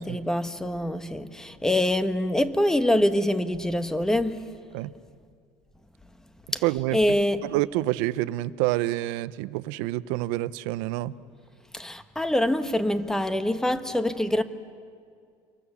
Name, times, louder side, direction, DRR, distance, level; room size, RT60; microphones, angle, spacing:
voice 1, 0.0-4.4 6.5-6.6 6.9-7.4 11.7-14.4, left 1 dB, 5° left, 1.1 m, -25 dB
voice 2, 6.6-7.0 7.4-11.2, right 17 dB, 85° right, 0.7 m, -27 dB
29.0 x 23.0 x 7.1 m
cardioid pair, 130°, 10 cm